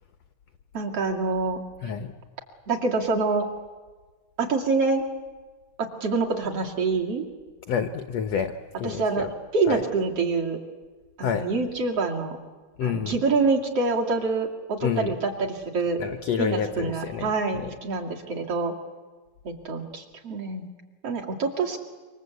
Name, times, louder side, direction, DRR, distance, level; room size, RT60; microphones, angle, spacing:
voice 1, 0.7-1.6 2.7-3.5 4.4-5.0 5.8-7.3 8.8-9.3 9.5-10.6 11.2-12.4 12.8-16.0 16.4-18.7 19.4-20.7 21.0-21.8, right 4 dB, 45° right, 1 dB, 3.0 m, -26 dB
voice 2, 1.8-2.1 7.7-9.3 9.7-9.8 11.2-11.5 12.8-13.2 14.8-15.1 16.0-17.7, left 7 dB, 70° left, 8 dB, 1.5 m, -29 dB
27.5 x 25.0 x 8.3 m, 1.3 s
omnidirectional pair, 4.3 m